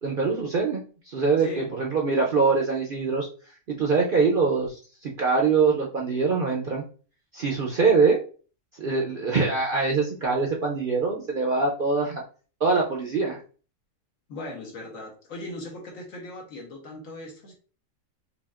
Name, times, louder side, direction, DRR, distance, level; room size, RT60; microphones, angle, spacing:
voice 1, 0.0-3.3 3.7-6.8 7.3-8.2 8.8-12.2 12.6-13.4, right 4 dB, 55° right, -1 dB, 0.6 m, -23 dB
voice 2, 1.4-1.7 14.3-17.5, left 1 dB, 70° left, 0 dB, 1.5 m, -38 dB
5.1 x 2.6 x 2.4 m, 0.39 s
omnidirectional pair, 1.5 m